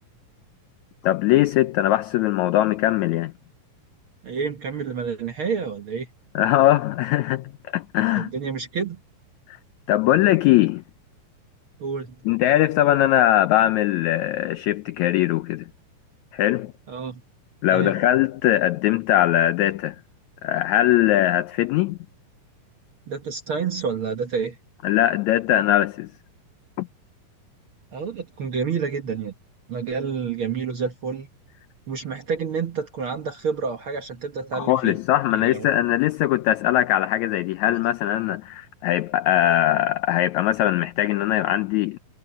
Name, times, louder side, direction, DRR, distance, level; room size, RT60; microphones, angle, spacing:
voice 1, 1.0-3.3 6.3-8.3 9.9-10.8 12.2-15.6 16.3-16.7 17.6-19.9 20.4-22.0 24.8-26.1 26.8-26.9 34.5-42.0, left 13 dB, 90° left, 1.6 m, -21 dB
voice 2, 4.2-6.1 8.1-9.0 11.8-12.2 16.9-17.2 17.7-18.0 23.1-24.6 27.9-29.3 29.7-31.3 31.9-35.0 35.3-35.7, right 5 dB, 55° right, 1.5 m, -29 dB
omnidirectional pair, 4.0 m